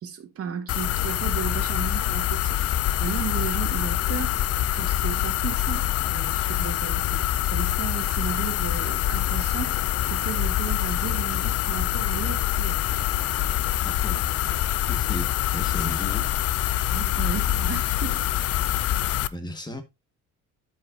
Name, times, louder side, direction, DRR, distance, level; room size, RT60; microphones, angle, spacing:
voice 1, 0.0-2.6 3.0-4.4 4.7-5.8 6.1-12.8 16.9-18.2, right 8 dB, 45° right, 2.6 m, -34 dB
sound 1, 0.7-19.3, left 12 dB, 50° left, 0.6 m, -25 dB
voice 2, 13.8-14.2 14.9-16.3 19.3-19.8, left 1 dB, 15° left, 1.9 m, -35 dB
12.0 x 5.5 x 2.8 m
cardioid pair, 135°, 31 cm